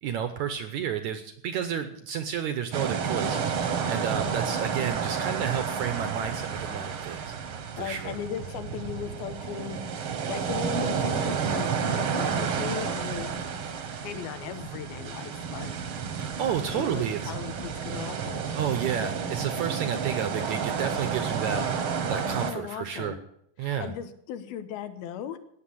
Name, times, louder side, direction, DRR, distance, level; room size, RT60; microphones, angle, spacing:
voice 1, 0.0-7.3 7.8-8.2 16.2-17.3 18.6-21.7 22.1-23.2 23.6-23.9, right 8 dB, 75° right, 9 dB, 1.8 m, -31 dB
sound 1, 2.7-22.5, right 6 dB, 60° right, 1.5 m, -31 dB
voice 2, 7.8-9.8 10.2-13.3 14.0-15.7 16.7-18.4 22.2-23.2 23.6-25.4, left 9 dB, 90° left, 10 dB, 3.0 m, -37 dB
17.5 x 6.9 x 8.5 m, 0.71 s
omnidirectional pair, 4.3 m